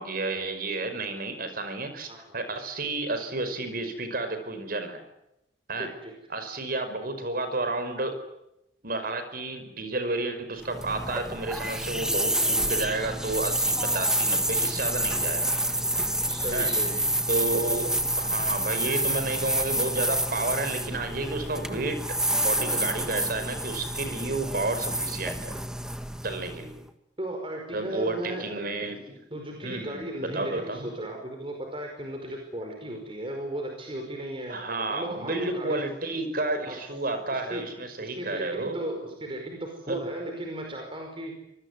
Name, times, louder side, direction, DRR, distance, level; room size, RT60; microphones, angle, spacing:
voice 1, 0.0-5.0 5.7-5.9 6.3-8.2 8.8-15.5 16.5-16.7 17.3-17.9 18.2-22.0 22.4-25.6 26.2-26.8 27.7-29.2 29.6-30.9 34.5-38.8 39.9-40.0, right 2 dB, 55° right, 9 dB, 5.2 m, -31 dB
voice 2, 2.1-2.4 5.8-6.1 16.3-17.0 27.2-28.5 29.3-35.8 36.7-36.8 37.3-37.6 38.0-41.3, right 1 dB, 30° right, 2 dB, 5.2 m, -36 dB
sound 1, 10.6-26.8, right 1 dB, 5° right, 1.7 m, -28 dB
26.0 x 20.5 x 9.9 m, 0.86 s
head